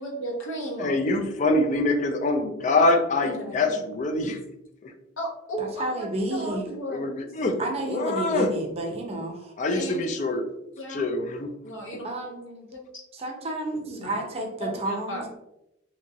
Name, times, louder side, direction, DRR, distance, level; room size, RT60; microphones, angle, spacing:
voice 1, 0.0-1.1 3.2-3.8 5.2-7.3 9.7-10.0 10.8-11.1 11.6-12.1 12.7-13.0 13.7-14.2 14.6-15.3, right 1 dB, 75° left, 0 dB, 0.8 m, -35 dB
voice 2, 0.8-4.4 4.8-4.9 6.9-7.6 7.9-8.5 9.6-10.5 10.9-11.6, left 2 dB, 35° left, 5 dB, 0.3 m, -24 dB
voice 3, 5.6-6.7 7.6-9.5 12.0-12.7 13.1-15.3, right 2 dB, 30° right, 1 dB, 0.5 m, -31 dB
2.9 x 2.5 x 2.6 m, 0.85 s
head